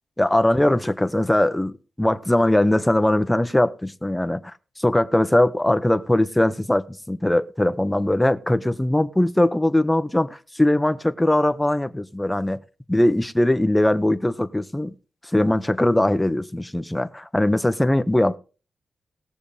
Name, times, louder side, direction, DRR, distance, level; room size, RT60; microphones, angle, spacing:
voice 1, 0.2-1.7 2.0-12.6 12.9-14.9 15.3-18.4, left 1 dB, 10° left, 1.0 m, -20 dB
19.5 x 7.0 x 3.4 m
cardioid pair, 75°, 0 cm